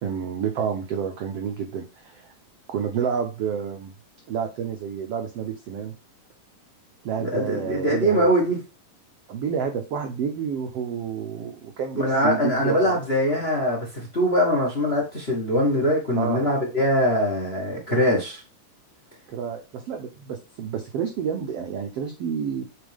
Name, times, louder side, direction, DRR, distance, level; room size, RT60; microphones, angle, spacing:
voice 1, 0.0-2.3 2.7-3.9 4.3-5.9 7.0-8.3 9.3-13.0 16.2-16.5 19.3-22.6, right 7 dB, 75° right, 4 dB, 1.4 m, -29 dB
voice 2, 7.2-8.6 11.9-18.4, equal, 25° left, 0 dB, 1.3 m, -22 dB
8.3 x 4.2 x 3.5 m, 0.30 s
omnidirectional pair, 3.9 m